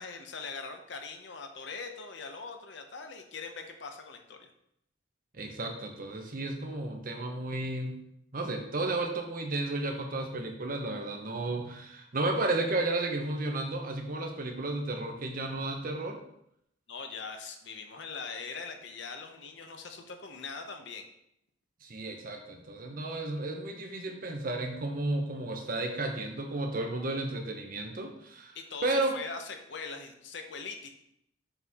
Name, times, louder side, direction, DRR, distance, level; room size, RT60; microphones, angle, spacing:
voice 1, 0.0-4.5 16.9-21.0 28.5-30.9, left 4 dB, 65° left, 5 dB, 0.8 m, -41 dB
voice 2, 5.3-8.0 8.3-16.2 21.8-28.6 28.8-29.1, right 2 dB, 45° right, 3 dB, 0.9 m, -33 dB
6.8 x 4.3 x 3.6 m, 0.75 s
head